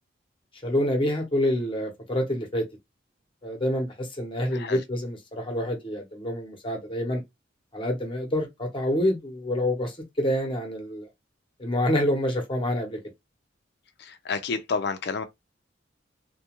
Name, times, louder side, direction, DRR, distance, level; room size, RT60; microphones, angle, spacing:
voice 1, 0.6-2.7 3.4-7.2 7.7-11.1 11.6-13.0, left 1 dB, 30° left, 0.8 m, -27 dB
voice 2, 4.5-4.8 14.0-15.2, left 5 dB, 60° left, 0.5 m, -30 dB
2.3 x 2.2 x 2.9 m
head